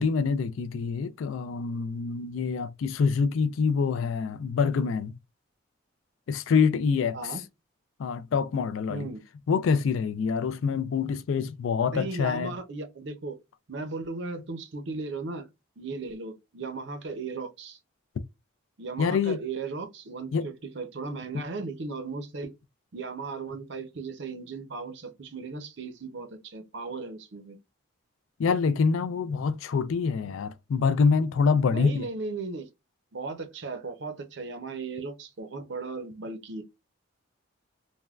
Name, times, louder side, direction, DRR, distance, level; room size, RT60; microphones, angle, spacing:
voice 1, 0.0-5.1 6.3-7.3 8.0-9.1 9.5-12.5 19.0-19.4 20.3-20.4 28.4-32.0, left 5 dB, 70° left, 0.3 m, -26 dB
voice 2, 7.1-7.5 8.9-9.3 11.9-13.4 13.7-15.5 15.8-17.8 18.8-22.5 22.9-27.6 31.7-32.7 33.1-36.6, right 3 dB, 60° right, 0.6 m, -36 dB
3.3 x 2.2 x 2.3 m
head